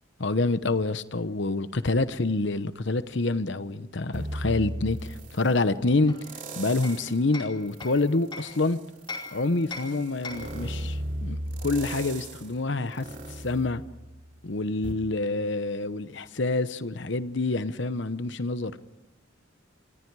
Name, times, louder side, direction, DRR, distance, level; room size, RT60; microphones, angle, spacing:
voice 1, 0.2-6.3 6.6-8.8 9.3-13.8 14.4-18.8, left 2 dB, 65° left, 0.9 m, -27 dB
sound 1, 4.1-5.5 6.2-7.2 7.7-14.4 14.8-14.9, right 1 dB, 40° right, 2.9 m, -37 dB
Hammer, 6.1-8.6 9.1-10.6, left 3 dB, 25° left, 4.7 m, -41 dB
29.0 x 24.0 x 4.8 m
head